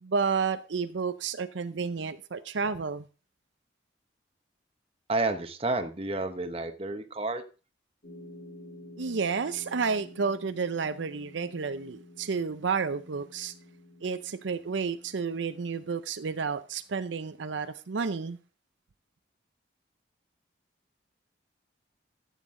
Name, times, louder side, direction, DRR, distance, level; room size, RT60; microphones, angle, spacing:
voice 1, 0.0-3.1 9.0-13.5 14.0-18.4, right 5 dB, 80° right, 0.6 m, -31 dB
voice 2, 5.1-7.4, right 2 dB, 30° right, 1.0 m, -30 dB
sound 1, 8.0-15.8, left 1 dB, 45° left, 2.4 m, -50 dB
13.0 x 8.2 x 3.7 m
head